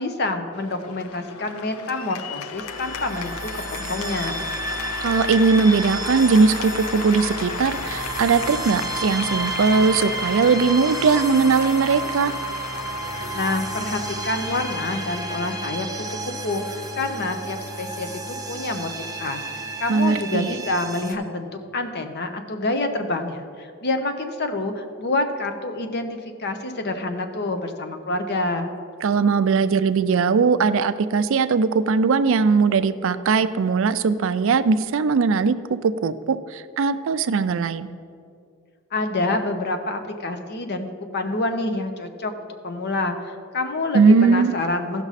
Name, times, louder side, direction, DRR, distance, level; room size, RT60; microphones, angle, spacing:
voice 1, 0.0-4.4 13.3-15.9 16.2-19.4 19.8-28.7 38.9-45.0, left 2 dB, 50° left, 7 dB, 0.8 m, -27 dB
Cheering / Applause, 0.5-19.8, left 6 dB, 80° left, 0.5 m, -35 dB
sound 1, 2.6-21.1, right 3 dB, 20° right, 0.7 m, -32 dB
voice 2, 5.0-12.3 19.9-20.5 29.0-37.9 43.9-44.6, right 5 dB, 65° right, 13 dB, 0.4 m, -19 dB
15.0 x 6.1 x 4.1 m, 2.3 s
head